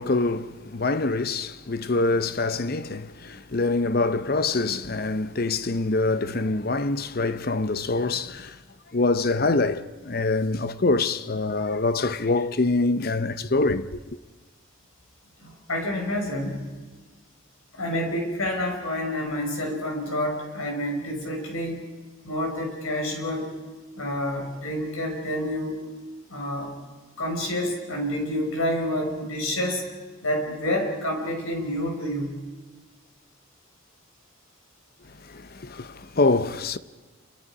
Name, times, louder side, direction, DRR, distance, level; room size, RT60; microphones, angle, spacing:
voice 1, 0.0-8.6 8.9-14.0 35.3-36.8, left 3 dB, 45° left, 0.7 m, -25 dB
voice 2, 15.4-16.7 17.7-21.8 22.2-23.5 24.0-25.7 26.3-26.7 27.2-29.8 30.2-32.4, left 1 dB, 90° left, 5.4 m, -28 dB
28.5 x 24.5 x 5.0 m
head